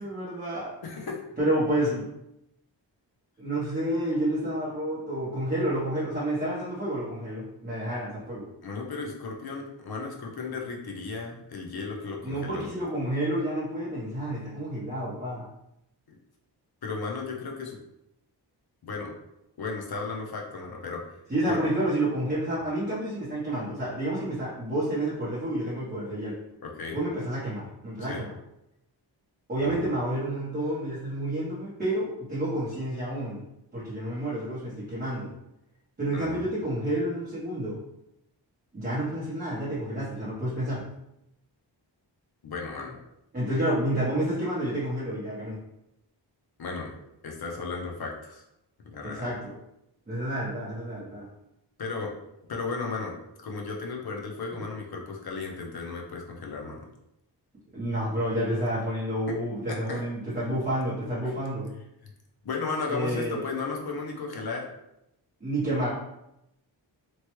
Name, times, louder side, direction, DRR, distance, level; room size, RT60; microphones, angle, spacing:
voice 1, 0.0-0.7 1.4-2.1 3.4-8.5 12.2-15.5 21.3-26.4 26.9-28.3 29.5-33.4 33.7-35.3 36.0-37.8 38.7-40.9 43.3-45.6 49.0-49.5 50.1-51.3 57.7-61.7 62.9-63.4 65.4-65.9, right 1 dB, 20° right, -11 dB, 0.8 m, -29 dB
voice 2, 0.8-1.2 8.6-12.7 16.1-16.2 16.8-17.8 18.8-19.1 19.6-21.0 21.5-21.6 26.6-27.0 28.1-28.2 29.6-29.8 36.1-36.4 42.4-43.0 46.6-46.9 47.2-48.4 48.8-49.3 51.8-52.2 52.5-53.2 53.4-56.9 59.3-59.4 59.7-60.0 61.2-61.3 62.0-62.1 62.4-64.7, left 4 dB, 60° left, 0 dB, 0.6 m, -35 dB
3.1 x 2.2 x 3.0 m, 0.85 s
wide cardioid pair, 145°, 44 cm